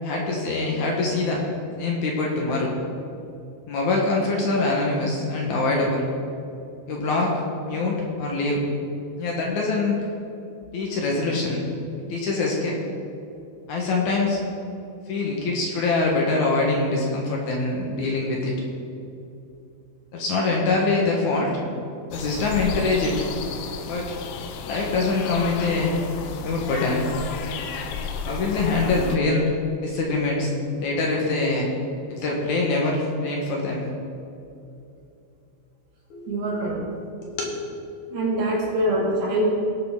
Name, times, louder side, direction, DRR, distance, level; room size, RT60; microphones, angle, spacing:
voice 1, 0.0-1.4 1.8-2.7 3.7-6.0 6.9-7.3 7.6-8.6 9.2-10.0 10.7-11.6 12.1-12.8 13.7-14.4 15.1-18.5 20.1-21.5 22.1-23.2 23.9-24.1 24.7-25.9 26.4-27.1 28.3-29.5 29.8-30.5 30.8-31.7 32.1-33.8 36.1-36.3 37.2-37.5, left 3 dB, 65° left, -1 dB, 2.3 m, -24 dB
sound 1, 22.1-29.2, left 5 dB, 90° left, 2.6 m, -33 dB
voice 2, 36.3-36.8 38.1-39.4, right 1 dB, 85° right, -4 dB, 4.2 m, -24 dB
17.5 x 6.7 x 3.7 m, 2.7 s
omnidirectional pair, 4.3 m